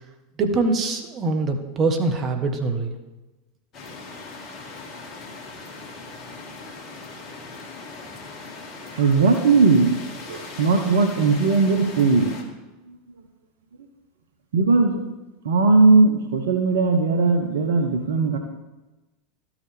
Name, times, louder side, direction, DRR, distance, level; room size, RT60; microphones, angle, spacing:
voice 1, 0.4-2.9, right 3 dB, 35° right, 5 dB, 1.2 m, -23 dB
sound 1, 3.7-12.4, left 3 dB, 40° left, 1.5 m, -39 dB
voice 2, 8.9-10.0 10.3-12.4 14.5-15.0 15.4-18.4, right 3 dB, 70° right, 5 dB, 0.7 m, -18 dB
13.0 x 4.9 x 3.5 m, 1.1 s
figure-of-eight pair, 85°, 0 cm